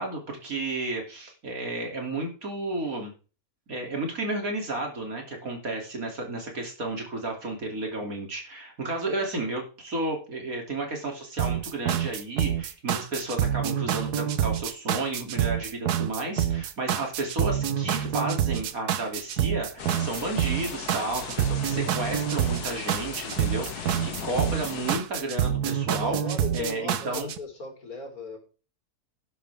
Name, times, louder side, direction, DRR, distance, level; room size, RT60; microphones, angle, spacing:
voice 1, 0.0-3.1 3.7-26.2 26.5-27.3, right 2 dB, 65° right, 2 dB, 3.4 m, -32 dB
sound 1, 11.4-27.4, right 10 dB, 85° right, 1.4 m, -27 dB
sound 2, 19.8-25.0, left 6 dB, 90° left, 1.8 m, -38 dB
voice 2, 26.0-28.4, left 4 dB, 70° left, 1 dB, 4.2 m, -37 dB
11.5 x 11.0 x 3.5 m, 0.35 s
omnidirectional pair, 1.6 m